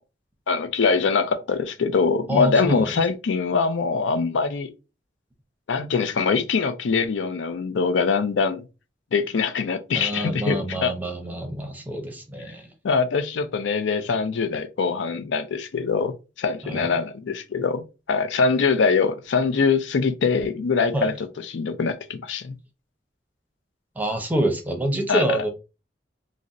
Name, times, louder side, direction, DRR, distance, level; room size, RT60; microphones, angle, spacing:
voice 1, 0.5-4.7 5.7-8.6 9.1-10.9 12.8-22.5 25.1-25.4, left 5 dB, 90° left, 0.4 m, -23 dB
voice 2, 2.3-2.9 9.9-12.7 16.6-16.9 20.9-21.2 24.0-25.5, right 1 dB, 10° right, 0.5 m, -26 dB
3.9 x 2.0 x 2.4 m
head